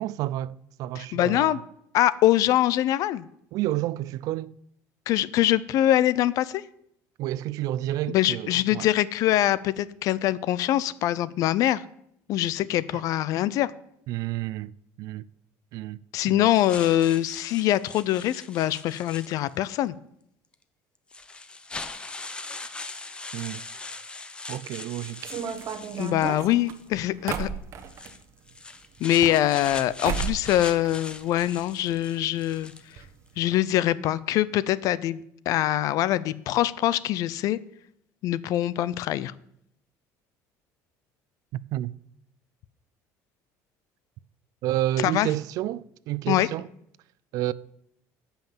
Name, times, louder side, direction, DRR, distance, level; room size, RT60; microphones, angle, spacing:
voice 1, 0.0-1.5 3.5-4.5 7.2-8.9 12.9-13.0 14.1-14.7 15.0-15.2 15.7-16.0 16.3-16.4 23.3-23.6 24.5-25.4 41.5-41.9 44.6-46.7 47.3-47.5, right 14 dB, 65° right, 0.5 m, -30 dB
voice 2, 1.0-1.6 1.9-3.3 5.1-6.6 8.1-11.8 12.3-13.7 16.1-19.9 26.0-27.5 29.0-32.7 33.4-37.6 38.2-39.3 45.0-45.3 46.3-46.5, left 13 dB, 65° left, 0.6 m, -24 dB
sound 1, 16.5-19.7 20.5-20.6 21.1-26.9 27.8-33.0, left 3 dB, 15° left, 0.8 m, -41 dB
sound 2, 25.2-28.1 29.0-29.8 30.0-30.5 30.8-31.6 31.9-32.0 32.2-32.3 33.0-33.1 33.4-33.5, right 8 dB, 50° right, 1.2 m, -33 dB
14.5 x 5.8 x 7.4 m
cardioid pair, 135°, 7 cm